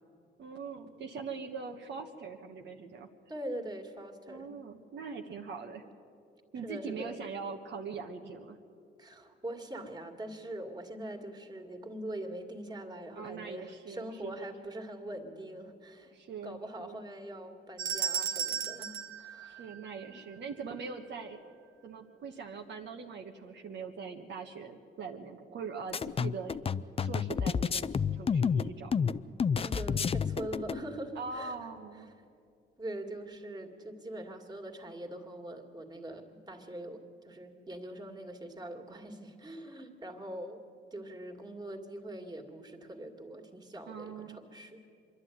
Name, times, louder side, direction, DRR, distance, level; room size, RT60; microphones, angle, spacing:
voice 1, 0.4-3.1 4.3-5.8 6.5-8.6 13.1-14.5 16.1-17.0 19.4-21.4 21.8-26.6 27.0-27.8 28.1-28.9 31.1-32.1 43.9-44.4, right 5 dB, 65° right, 2 dB, 1.3 m, -42 dB
voice 2, 3.3-4.5 6.6-7.2 9.0-16.1 16.4-19.7 20.1-20.2 29.6-31.6 32.8-40.6 40.9-44.8, right 1 dB, 20° right, 3 dB, 2.3 m, -43 dB
sound 1, 17.8-20.2, right 7 dB, 85° right, 1.3 m, -35 dB
sound 2, 25.9-30.8, left 6 dB, 30° left, 0.5 m, -30 dB
25.0 x 11.5 x 9.4 m, 2.5 s
cardioid pair, 90°, 20 cm